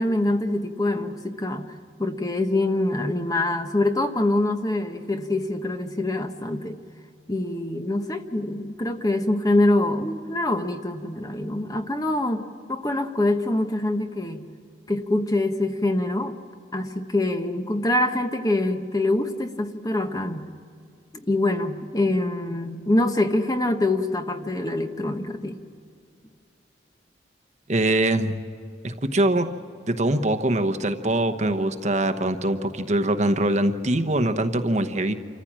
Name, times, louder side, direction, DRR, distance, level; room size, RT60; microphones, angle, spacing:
voice 1, 0.0-1.7 2.0-6.8 7.3-14.5 14.9-16.4 16.7-20.5 21.2-25.6, left 1 dB, 20° left, 6 dB, 1.1 m, -25 dB
voice 2, 27.7-28.4 28.8-29.5 29.9-35.1, right 1 dB, 40° right, 8 dB, 1.0 m, -23 dB
27.5 x 14.5 x 7.5 m, 2.5 s
head